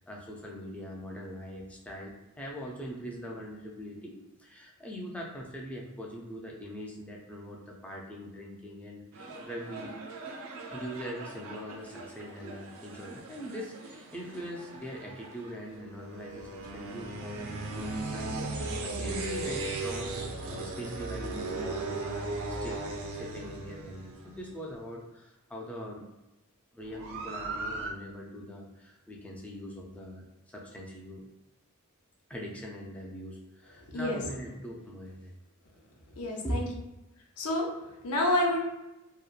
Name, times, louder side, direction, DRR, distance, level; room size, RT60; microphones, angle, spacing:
voice 1, 0.1-9.9 10.7-26.0 26.7-31.3 32.3-35.3 36.2-36.6, equal, 5° left, -2 dB, 0.3 m, -42 dB
sound 1, 9.1-24.7 26.8-27.9, right 2 dB, 65° right, 0.4 m, -38 dB
voice 2, 36.2-36.7 37.4-38.6, left 1 dB, 85° left, 0 dB, 0.6 m, -29 dB
2.8 x 2.1 x 2.3 m, 0.98 s
head